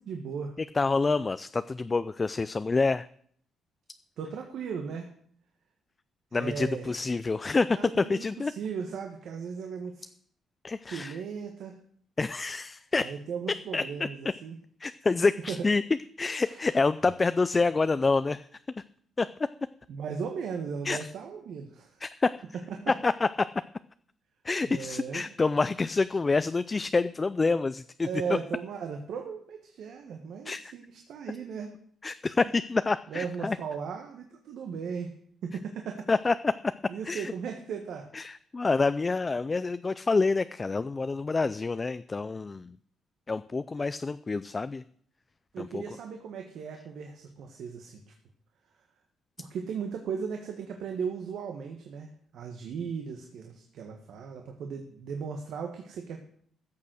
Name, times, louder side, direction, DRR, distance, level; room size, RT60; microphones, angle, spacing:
voice 1, 0.0-0.6 4.2-5.1 6.3-6.9 7.7-10.1 10.9-11.8 13.0-14.6 15.5-15.7 16.4-16.6 19.9-22.0 22.8-22.9 24.6-25.2 28.0-31.7 33.1-35.1 35.4-36.1 36.9-38.1 45.5-48.1 49.4-56.2, right 6 dB, 75° right, 3 dB, 1.5 m, -37 dB
voice 2, 0.7-3.1 6.3-8.5 10.6-11.2 12.2-13.1 13.7-14.1 14.8-15.8 16.2-18.5 19.2-19.3 20.8-21.1 22.0-22.3 22.9-23.3 24.4-28.1 30.5-30.7 32.0-33.6 36.1-36.5 37.0-37.3 38.1-42.8 43.3-44.8 45.6-45.8, left 3 dB, 25° left, 14 dB, 0.4 m, -27 dB
14.0 x 6.6 x 6.3 m, 0.63 s
cardioid pair, 90°, 0 cm